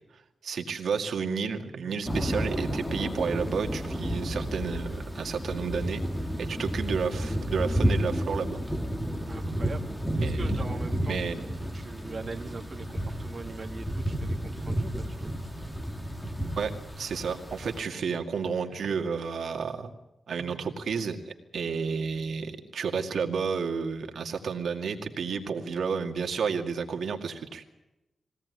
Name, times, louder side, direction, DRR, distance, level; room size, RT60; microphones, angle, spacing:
voice 1, 0.1-6.0 6.4-8.6 10.2-10.5 11.0-11.5 16.6-19.9 20.3-27.6, right 5 dB, 70° right, 4 dB, 2.2 m, -31 dB
sound 1, 2.1-17.8, equal, 10° left, 1.9 m, -31 dB
voice 2, 9.3-11.2 11.7-15.7, right 4 dB, 35° right, 2 dB, 2.0 m, -41 dB
22.5 x 17.0 x 9.6 m, 0.96 s
wide cardioid pair, 170°, 0 cm